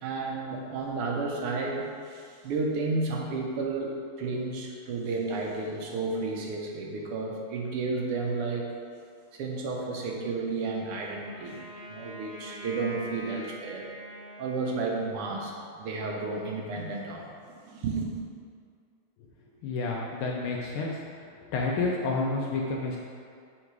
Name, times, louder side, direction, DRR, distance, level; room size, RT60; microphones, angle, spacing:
voice 1, 0.0-8.7 9.3-11.6 11.9-13.9 14.4-18.1, right 3 dB, 90° right, 0 dB, 1.8 m, -32 dB
Wind instrument woodwind instrument, 11.2-15.4, equal, 50° right, 0.7 m, -44 dB
voice 2, 19.6-20.9 21.5-23.0, left 3 dB, 80° left, -2 dB, 1.5 m, -29 dB
6.0 x 3.8 x 4.6 m, 2.2 s
omnidirectional pair, 2.4 m